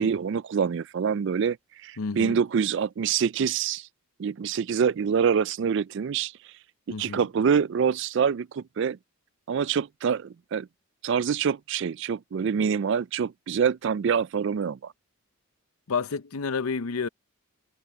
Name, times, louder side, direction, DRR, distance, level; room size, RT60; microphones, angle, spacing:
voice 1, 0.0-1.6 1.8-3.9 4.2-6.3 6.9-9.0 9.5-10.7 11.0-14.9, right 7 dB, 55° right, 0.3 m, -26 dB
voice 2, 2.0-2.4 6.9-7.3 15.9-17.1, left 5 dB, 85° left, 0.7 m, -30 dB
head